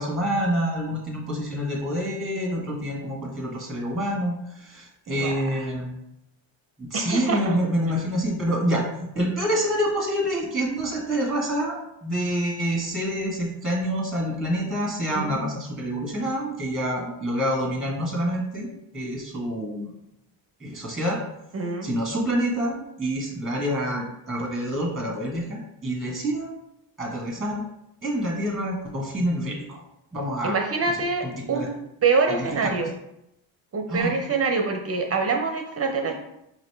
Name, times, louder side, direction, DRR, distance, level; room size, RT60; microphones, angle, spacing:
voice 1, 0.0-5.9 6.8-18.7 18.9-19.9 20.6-21.2 21.8-26.5 27.0-27.6 28.0-29.8 30.1-30.6 31.2-31.7 32.3-32.7 33.9-34.1, equal, ahead, 0 dB, 0.9 m, -27 dB
voice 2, 5.1-5.7 6.9-7.5 7.9-8.0 15.1-15.5 21.5-21.9 30.4-31.7 32.0-32.9 33.7-36.1, right 4 dB, 30° right, 4 dB, 0.5 m, -25 dB
4.9 x 2.8 x 3.2 m, 0.82 s
cardioid pair, 105°, 48 cm